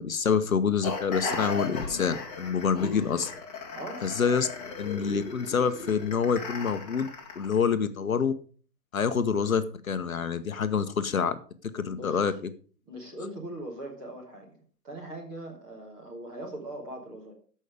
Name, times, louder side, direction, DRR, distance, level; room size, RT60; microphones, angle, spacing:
voice 1, 0.0-3.3 4.0-4.5 4.8-7.1 7.4-8.3 8.9-11.4 11.7-12.5, left 6 dB, 55° left, 10 dB, 0.9 m, -27 dB
sound 1, 0.8-7.6, left 4 dB, 25° left, 2.0 m, -37 dB
voice 2, 3.7-4.4 11.9-12.3 12.8-14.6 14.8-17.3, right 1 dB, 10° right, -2 dB, 1.3 m, -41 dB
14.0 x 5.5 x 5.0 m, 0.42 s
hypercardioid pair, 160°, 48 cm